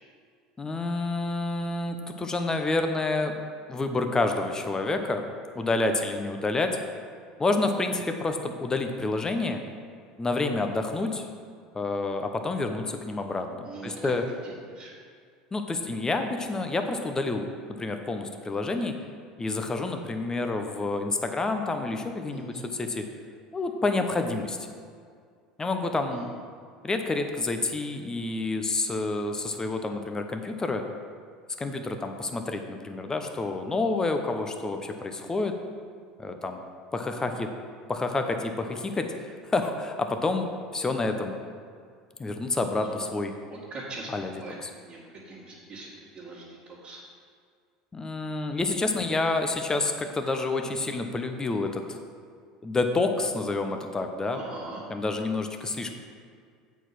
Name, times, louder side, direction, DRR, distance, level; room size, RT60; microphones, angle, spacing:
voice 1, 0.6-3.3 3.7-5.2 5.5-6.8 7.4-9.6 10.2-11.3 11.7-14.2 15.5-17.5 17.8-18.9 19.4-23.0 23.5-24.7 25.6-26.2 26.8-30.8 31.6-35.5 36.2-36.6 36.9-37.5 37.9-40.5 40.7-41.4 42.2-43.3 44.1-44.7 47.9-52.0 52.6-54.4 54.9-55.9, left 3 dB, 20° left, 5 dB, 0.8 m, -28 dB
voice 2, 13.6-14.1 14.4-14.9 22.3-22.6 26.1-26.2 42.8-43.1 43.5-44.5 44.9-47.0 54.3-54.8, right 3 dB, 35° right, -10 dB, 2.1 m, -42 dB
8.0 x 4.7 x 6.0 m, 2.1 s
hypercardioid pair, 80°, 3 cm